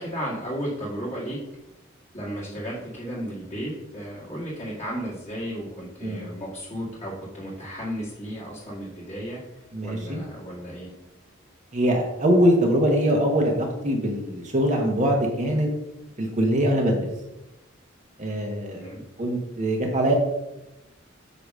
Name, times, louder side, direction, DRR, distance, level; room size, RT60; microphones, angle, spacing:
voice 1, 0.0-1.4 2.1-9.4 9.8-10.9 18.7-19.0, equal, 30° left, -7 dB, 1.9 m, -34 dB
voice 2, 9.7-10.2 11.7-15.7 16.2-17.1 18.2-18.9 19.2-20.1, equal, 35° right, 1 dB, 1.1 m, -22 dB
8.2 x 3.0 x 6.2 m, 0.93 s
head